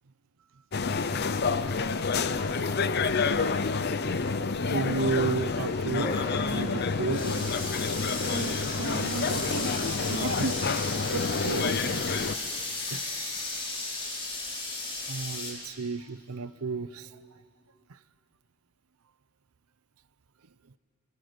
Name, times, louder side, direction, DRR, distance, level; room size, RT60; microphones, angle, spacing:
sound 1, 0.7-12.4, left 4 dB, 50° left, 0.7 m, -28 dB
voice 1, 4.2-7.5 8.1-8.2 11.4-12.1 12.9-13.0 15.1-17.1, right 4 dB, 90° right, 15 dB, 0.7 m, -33 dB
sound 2, 6.0-15.5, left 2 dB, 25° left, 4.3 m, -35 dB
voice 2, 8.3-10.5 10.8-10.9, right 3 dB, 60° right, 13 dB, 0.8 m, -35 dB
sound 3, 10.7-15.7, left 7 dB, 80° left, 2.3 m, -47 dB
26.5 x 20.0 x 8.0 m, 2.4 s
head